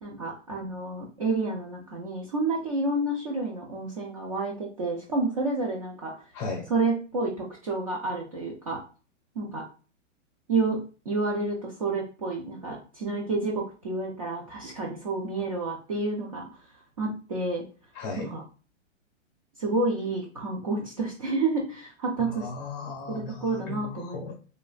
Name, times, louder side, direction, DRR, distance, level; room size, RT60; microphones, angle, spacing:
voice 1, 0.0-6.1 6.7-8.8 9.4-9.6 10.5-10.8 11.1-16.5 17.0-17.6 18.2-18.4 19.6-22.5 23.1-24.3, right 3 dB, 30° right, -1 dB, 0.4 m, -29 dB
voice 2, 6.3-6.7 17.9-18.3 22.2-24.3, left 4 dB, 20° left, 1 dB, 0.7 m, -36 dB
3.1 x 2.3 x 2.4 m, 0.36 s
hypercardioid pair, 160°, 38 cm